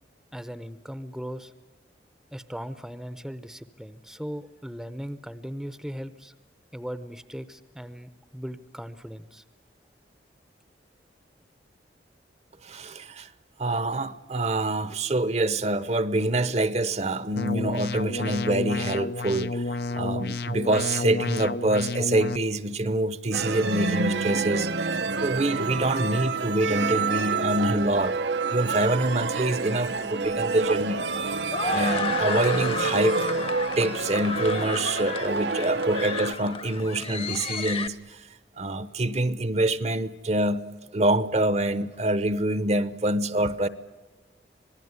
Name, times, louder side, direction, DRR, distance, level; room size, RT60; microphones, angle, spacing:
voice 1, 0.3-1.5 2.3-6.3 6.7-9.4, equal, ahead, 0.8 m, -38 dB
voice 2, 12.6-13.3 13.6-24.7 25.2-28.2 28.5-31.0 31.7-33.2 33.8-38.3 38.6-40.7 40.9-43.7, right 1 dB, 35° right, 0.9 m, -26 dB
sound 1, 17.4-22.4, left 2 dB, 60° left, 0.7 m, -30 dB
sound 2, 23.3-36.3, right 4 dB, 80° right, 0.9 m, -28 dB
Cheering sound, 29.9-37.9, left 4 dB, 30° left, 1.1 m, -33 dB
26.5 x 19.0 x 9.6 m
head